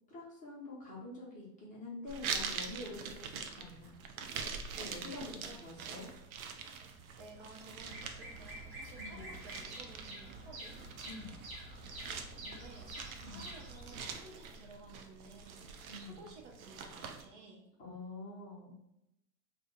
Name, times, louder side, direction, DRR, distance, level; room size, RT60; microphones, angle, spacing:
voice 1, 0.1-3.9 4.7-6.1 9.0-9.3 11.0-11.4 13.2-13.4 15.9-16.2 17.8-18.8, left 2 dB, 15° left, -6 dB, 1.0 m, -47 dB
sound 1, 2.1-17.2, right 6 dB, 60° right, 0.6 m, -45 dB
voice 2, 5.3-5.6 7.2-10.8 12.4-17.7, right 2 dB, 45° right, 0 dB, 1.0 m, -55 dB
Bird vocalization bird call bird song, 7.8-14.1, right 1 dB, 15° right, 0.3 m, -48 dB
2.7 x 2.5 x 3.9 m, 0.83 s
hypercardioid pair, 125°, 48 cm